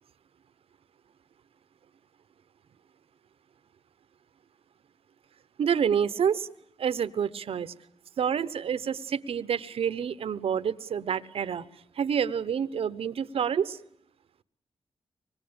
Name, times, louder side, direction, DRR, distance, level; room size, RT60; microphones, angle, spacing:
voice 1, 5.6-6.5 6.8-7.7 8.2-11.7 11.9-13.8, right 7 dB, 80° right, 14 dB, 1.0 m, -28 dB
25.0 x 21.0 x 8.8 m, 0.70 s
wide cardioid pair, 160°, 10 cm